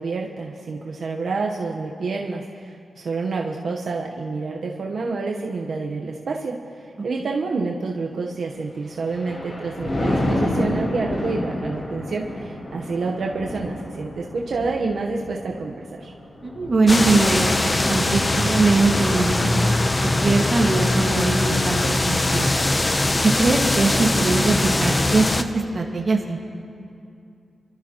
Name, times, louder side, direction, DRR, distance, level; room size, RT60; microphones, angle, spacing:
voice 1, 0.0-16.1, right 4 dB, 70° right, -1 dB, 1.0 m, -28 dB
Thunder, 8.7-20.2 20.7-21.0, left 1 dB, 50° left, 4.0 m, -30 dB
voice 2, 16.4-17.6 17.9-19.8 20.0-22.5 23.2-26.4, right 3 dB, 45° right, 0 dB, 1.7 m, -21 dB
sound 1, 16.9-25.4, left 2 dB, 25° left, 0.7 m, -21 dB
26.5 x 13.0 x 3.0 m, 2.5 s
wide cardioid pair, 95°, 0 cm